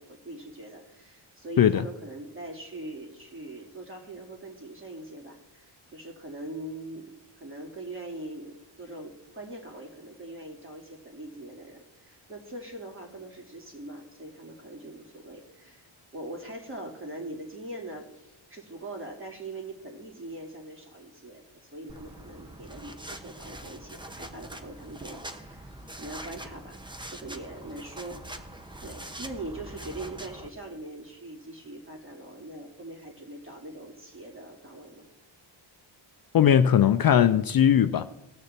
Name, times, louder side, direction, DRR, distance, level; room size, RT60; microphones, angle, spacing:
voice 1, 0.0-26.8 27.1-28.2 28.8-35.0, right 2 dB, 25° right, 2.8 m, -42 dB
sound 1, 21.9-30.5, right 1 dB, 10° right, 1.0 m, -43 dB
voice 2, 36.3-38.1, left 9 dB, 50° left, 0.5 m, -19 dB
19.5 x 6.6 x 4.3 m
cardioid pair, 85°, 47 cm